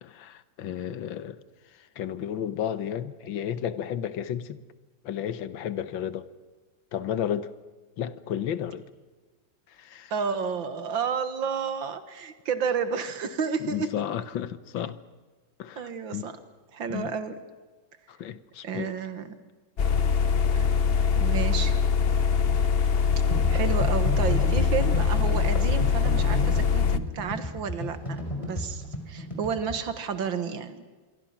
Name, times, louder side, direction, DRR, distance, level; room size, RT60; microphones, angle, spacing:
voice 1, 0.0-1.4 2.0-4.6 5.0-6.3 6.9-7.5 8.0-8.9 9.8-10.1 13.6-15.0 15.6-16.3 16.9-17.1 18.1-18.9, left 9 dB, 80° left, 1.8 m, -32 dB
voice 2, 10.1-13.9 15.8-16.4 16.7-17.4 18.6-19.3 20.5-20.7 21.1-21.7 23.5-30.8, right 6 dB, 80° right, 2.3 m, -31 dB
sound 1, 19.8-27.0, left 6 dB, 55° left, 0.6 m, -23 dB
sound 2, 23.2-29.7, equal, 15° left, 4.8 m, -33 dB
26.0 x 23.5 x 5.9 m
omnidirectional pair, 2.1 m